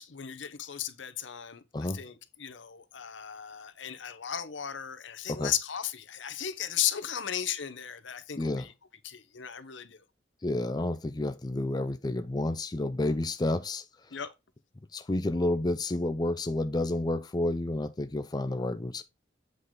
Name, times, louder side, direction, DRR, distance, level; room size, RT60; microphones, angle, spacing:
voice 1, 0.0-8.7 9.0-10.0 14.1-14.3, left 10 dB, 80° left, 0.9 m, -35 dB
voice 2, 8.4-8.7 10.4-14.2 14.9-19.0, left 2 dB, 20° left, 0.5 m, -30 dB
7.9 x 4.9 x 3.7 m
head